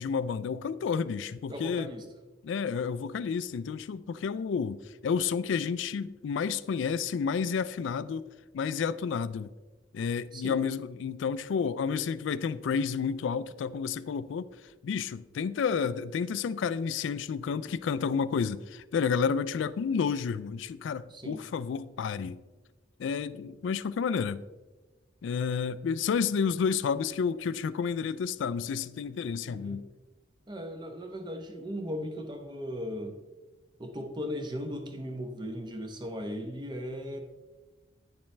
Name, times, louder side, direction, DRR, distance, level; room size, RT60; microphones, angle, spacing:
voice 1, 0.0-1.9 2.4-8.2 8.5-9.5 9.9-14.5 14.8-22.4 23.0-24.4 25.2-29.8, left 6 dB, 80° left, 0.3 m, -30 dB
voice 2, 1.5-2.0 10.3-10.6 21.1-21.4 29.4-29.8 30.5-33.2 33.8-37.2, equal, 25° right, 0.8 m, -37 dB
8.9 x 7.0 x 3.3 m
head